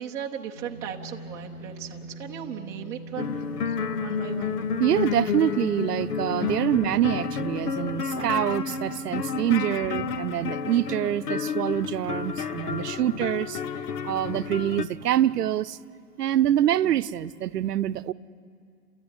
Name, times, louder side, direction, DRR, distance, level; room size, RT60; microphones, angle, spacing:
voice 1, 0.0-4.7 6.8-7.0 9.9-10.2 16.8-17.1, right 8 dB, 5° right, 0.6 m, -38 dB
sound 1, 0.6-15.0, right 2 dB, 30° left, 2.7 m, -45 dB
sound 2, 3.2-14.9, left 6 dB, 85° left, 1.3 m, -30 dB
voice 2, 4.8-13.6 14.0-15.8 16.2-18.1, right 12 dB, 85° right, 0.8 m, -25 dB
29.5 x 14.0 x 9.8 m
hypercardioid pair, 160°, 46 cm